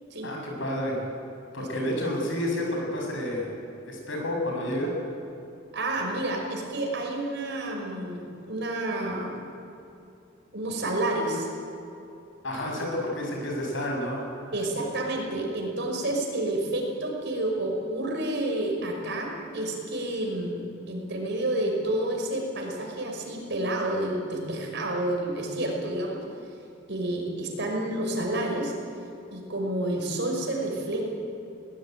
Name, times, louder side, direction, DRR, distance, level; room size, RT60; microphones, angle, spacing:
voice 1, 0.2-1.0 1.5-3.5 3.9-4.9 12.4-14.2, left 1 dB, 70° left, 0 dB, 7.3 m, -30 dB
voice 2, 5.7-9.3 10.5-11.5 12.8-12.9 14.5-26.2 26.9-28.7 29.3-31.0, right 1 dB, 60° right, 1 dB, 5.5 m, -29 dB
21.5 x 19.0 x 9.5 m, 2.7 s
head